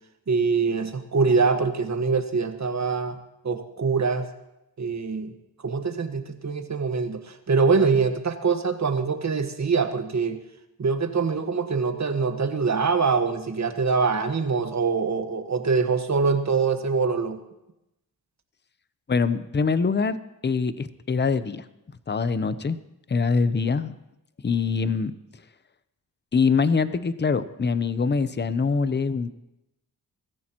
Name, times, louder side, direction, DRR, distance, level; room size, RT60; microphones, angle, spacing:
voice 1, 0.3-3.2 3.4-4.3 4.8-5.3 5.6-10.4 10.8-17.4, right 4 dB, 45° right, 7 dB, 1.5 m, -24 dB
voice 2, 19.1-20.2 20.4-21.6 22.1-22.8 23.1-24.0 24.4-25.1 26.3-29.3, left 5 dB, 25° left, 13 dB, 0.7 m, -24 dB
23.5 x 14.0 x 3.0 m, 0.89 s
cardioid pair, 90°, 39 cm